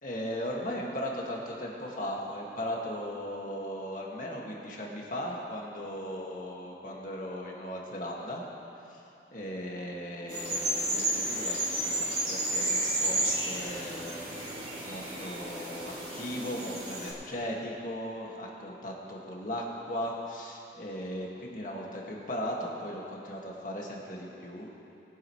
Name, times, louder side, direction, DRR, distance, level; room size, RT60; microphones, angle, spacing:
voice 1, 0.0-8.5 8.9-9.0 9.3-14.5 14.9-24.8, equal, 50° left, -2 dB, 1.9 m, -37 dB
sound 1, 10.3-17.1, right 1 dB, 35° right, 3.4 m, -32 dB
21.5 x 10.0 x 3.2 m, 2.8 s
head